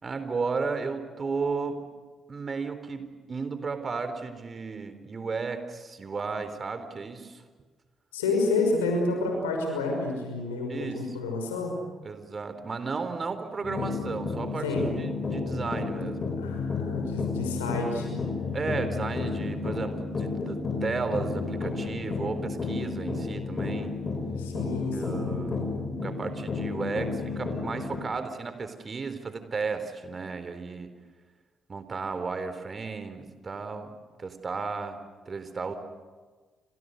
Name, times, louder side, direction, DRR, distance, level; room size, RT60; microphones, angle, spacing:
voice 1, 0.0-1.8 2.3-7.4 10.7-11.2 12.0-14.7 15.0-16.4 18.5-24.0 24.9-25.6 26.0-30.9 31.7-35.7, right 4 dB, 40° right, 10 dB, 3.9 m, -34 dB
voice 2, 8.1-11.8 14.6-14.9 16.4-18.2 24.4-25.4, left 3 dB, 80° left, 2 dB, 5.8 m, -29 dB
sound 1, 13.6-28.0, left 4 dB, 40° left, 6.4 m, -32 dB
29.5 x 27.5 x 6.6 m, 1.4 s
figure-of-eight pair, 40°, 0 cm